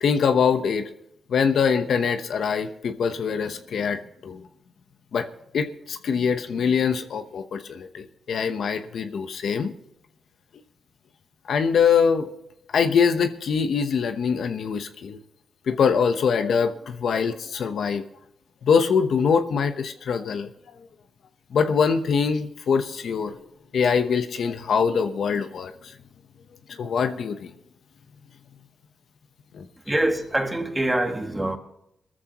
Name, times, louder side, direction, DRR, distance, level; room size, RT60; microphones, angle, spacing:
voice 1, 0.0-0.9 1.3-4.4 5.1-5.3 5.5-9.7 11.5-12.3 12.7-15.2 15.7-18.0 18.6-20.5 21.5-23.4 23.7-25.7 26.8-27.5 29.5-29.6, left 6 dB, 75° left, 1.0 m, -23 dB
voice 2, 29.9-31.6, right 1 dB, 15° right, 2.1 m, -24 dB
21.0 x 14.0 x 3.0 m
cardioid pair, 75°, 0 cm